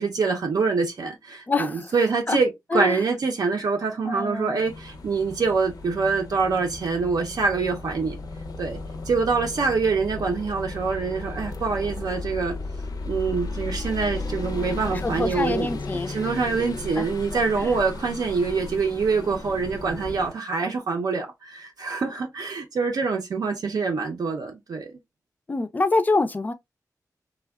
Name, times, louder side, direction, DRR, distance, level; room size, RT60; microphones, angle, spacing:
voice 1, 0.0-8.2 8.6-8.8 9.1-12.6 13.1-15.8 16.1-25.0, right 4 dB, 75° right, 0.6 m, -25 dB
voice 2, 1.5-1.9 2.3-2.4 2.7-3.0 4.0-4.6 14.9-16.2 17.0-17.1 17.3-17.8 25.5-26.5, left 3 dB, 25° left, 0.3 m, -26 dB
sound 1, 4.6-20.3, left 2 dB, 80° left, 0.5 m, -35 dB
3.3 x 2.1 x 2.2 m
wide cardioid pair, 145°, 7 cm